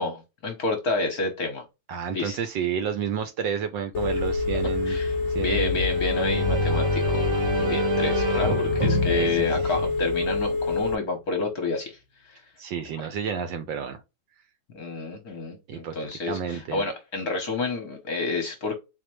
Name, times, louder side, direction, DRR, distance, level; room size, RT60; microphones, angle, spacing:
voice 1, 0.0-1.6 2.1-2.4 4.8-7.2 7.5-12.0 12.3-12.4 14.7-18.8, left 3 dB, 55° left, 1.1 m, -29 dB
voice 2, 1.9-5.0 5.3-5.8 9.1-9.9 12.6-14.0 15.7-15.9 16.3-16.8, right 7 dB, 75° right, 1.1 m, -31 dB
Telephone, 3.9-10.9, left 3 dB, 85° left, 0.6 m, -26 dB
sound 1, 5.7-10.5, right 1 dB, 45° right, 1.0 m, -28 dB
4.2 x 2.8 x 3.0 m
omnidirectional pair, 2.4 m